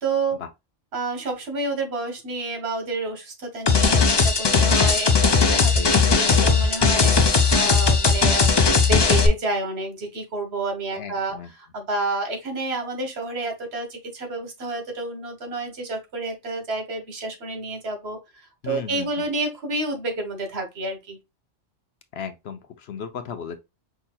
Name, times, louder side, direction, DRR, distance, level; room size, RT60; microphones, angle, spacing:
voice 1, 0.0-0.4 0.9-18.2 18.6-21.2, right 2 dB, 60° right, 1.4 m, -29 dB
sound 1, 3.7-9.3, left 4 dB, 45° left, 0.3 m, -18 dB
voice 2, 5.5-5.9 10.9-11.5 18.6-19.3 22.1-23.6, left 7 dB, 65° left, 0.8 m, -35 dB
5.5 x 2.9 x 2.2 m
omnidirectional pair, 1.2 m